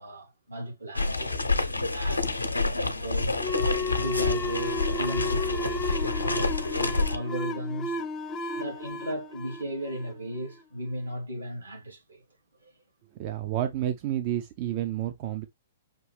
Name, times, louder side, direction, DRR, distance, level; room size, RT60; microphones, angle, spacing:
voice 1, 0.0-2.5 2.7-3.3 4.0-8.0 8.5-12.2 12.6-12.7, equal, 80° right, 3.0 m, -36 dB
sound 1, 0.9-7.2, left 3 dB, 85° left, 0.7 m, -28 dB
sound 2, 3.4-10.6, left 2 dB, 20° left, 0.6 m, -33 dB
voice 2, 13.2-15.4, right 12 dB, 40° right, 0.5 m, -30 dB
5.9 x 2.7 x 3.3 m
figure-of-eight pair, 115°, 0 cm